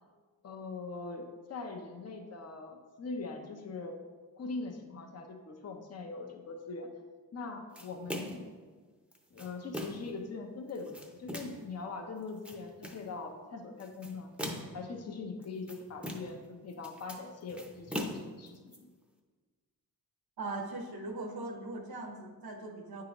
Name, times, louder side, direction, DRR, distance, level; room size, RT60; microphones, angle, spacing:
voice 1, 0.4-4.0 4.4-6.9 7.3-8.4 9.3-14.3 14.7-18.0 18.3-18.7, left 3 dB, 40° left, 4 dB, 0.7 m, -42 dB
sound 1, 7.7-8.5 9.1-10.1 10.7-11.7 12.2-13.1 13.8-14.9 15.4-16.4 16.7-18.8, equal, 5° right, 0.6 m, -41 dB
voice 2, 20.4-23.0, right 2 dB, 75° right, 3 dB, 1.0 m, -40 dB
8.6 x 3.8 x 3.0 m, 1.5 s
wide cardioid pair, 100°, 37 cm